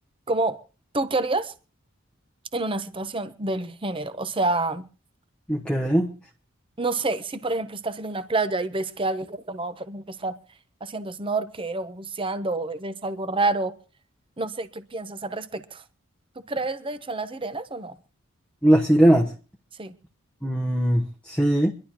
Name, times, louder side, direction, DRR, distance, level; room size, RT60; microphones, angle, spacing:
voice 1, 0.3-0.6 0.9-1.5 2.5-4.8 6.8-10.4 10.8-13.7 14.4-15.8 16.5-18.0 19.8-19.9, right 2 dB, 25° right, 0.8 m, -28 dB
voice 2, 5.5-6.1 18.6-19.3 20.4-21.7, right 1 dB, 5° left, 1.0 m, -20 dB
25.0 x 11.5 x 3.0 m
head